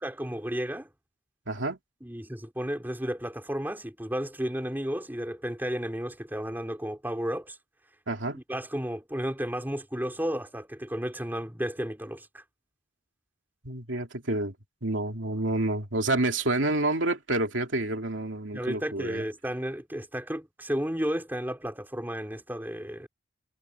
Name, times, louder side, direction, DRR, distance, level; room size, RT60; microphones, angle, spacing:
voice 1, 0.0-0.9 2.0-7.6 8.3-12.4 18.5-23.1, equal, 10° right, 3.4 m, -33 dB
voice 2, 1.5-1.8 8.1-8.4 13.6-14.5 14.8-19.2, right 2 dB, 85° right, 2.8 m, -28 dB
head